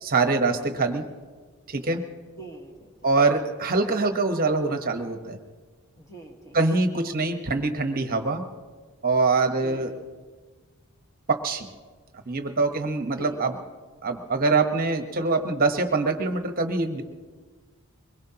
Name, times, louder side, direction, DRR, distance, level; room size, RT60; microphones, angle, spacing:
voice 1, 0.0-1.0 1.7-2.0 3.0-5.4 6.5-8.4 9.0-9.9 11.3-11.7 12.3-13.5 14.0-17.0, right 3 dB, 40° right, 6 dB, 1.1 m, -24 dB
voice 2, 2.3-2.9 6.0-6.6 9.6-10.1 13.0-13.4, right 3 dB, 15° left, 1 dB, 1.6 m, -44 dB
23.5 x 21.5 x 2.9 m, 1.4 s
head